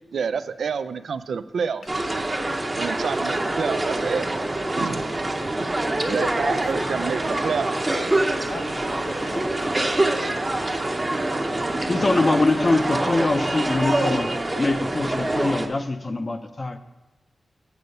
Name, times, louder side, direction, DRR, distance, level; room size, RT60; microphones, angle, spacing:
voice 1, 0.1-2.4 2.7-4.3 4.8-5.1 5.6-5.7 6.0-7.8, right 6 dB, 90° right, 13 dB, 0.3 m, -29 dB
sound 1, 1.9-15.7, right 2 dB, 20° right, 0.7 m, -25 dB
voice 2, 5.9-7.4 7.9-9.8, left 3 dB, 65° left, 6 dB, 0.8 m, -40 dB
voice 3, 11.9-14.3 14.6-16.8, left 2 dB, 35° left, 9 dB, 0.5 m, -23 dB
8.2 x 6.6 x 5.2 m, 1.1 s
wide cardioid pair, 100°, 0 cm